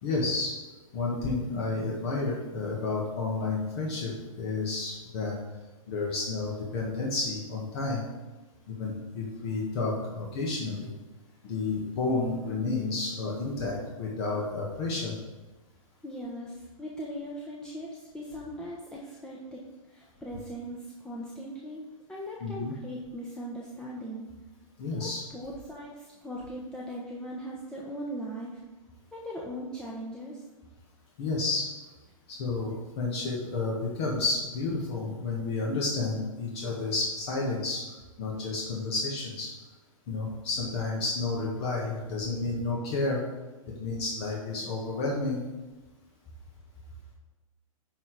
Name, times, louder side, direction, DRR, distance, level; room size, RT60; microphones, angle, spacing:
voice 1, 0.0-0.6 0.9-5.3 5.9-8.0 8.7-10.9 11.4-15.1 22.4-22.7 24.8-25.2 31.2-31.7 32.3-37.8 38.2-39.5 40.1-43.2 43.8-45.5, left 3 dB, 50° left, -3 dB, 2.0 m, -31 dB
voice 2, 16.0-19.6 19.9-24.2 25.0-28.6 29.1-30.4, equal, 5° left, -5 dB, 1.1 m, -39 dB
10.5 x 4.3 x 5.0 m, 1.1 s
hypercardioid pair, 115°, 18 cm